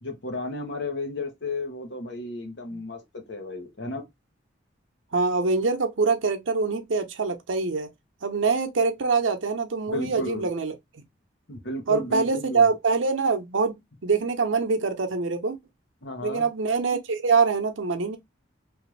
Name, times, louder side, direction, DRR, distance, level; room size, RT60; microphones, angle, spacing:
voice 1, 0.0-4.0 9.9-10.5 11.5-12.7 16.0-16.5, left 2 dB, 65° left, 1.0 m, -33 dB
voice 2, 5.1-7.9 8.2-11.0 11.9-15.6 16.2-18.2, right 4 dB, 90° right, 0.7 m, -24 dB
3.2 x 2.5 x 3.2 m
head